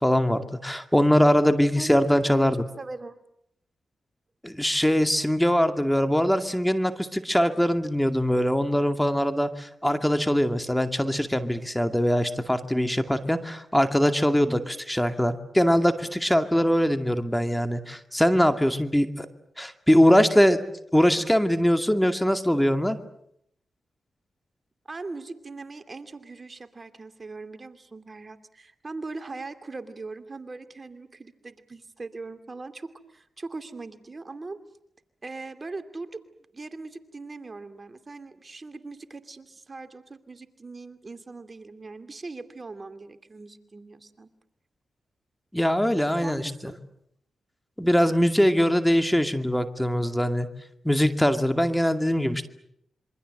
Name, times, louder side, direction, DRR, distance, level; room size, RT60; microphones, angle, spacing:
voice 1, 0.0-2.7 4.4-19.3 19.6-20.6 20.9-23.0 45.5-46.7 47.8-50.5 50.8-52.5, equal, 5° left, 8 dB, 2.3 m, -22 dB
voice 2, 1.8-2.5 2.8-3.2 24.9-34.6 35.2-36.2 36.5-44.3 46.2-46.8, right 3 dB, 40° right, 9 dB, 2.5 m, -40 dB
27.0 x 24.0 x 7.9 m, 0.73 s
supercardioid pair, 45°, 0 cm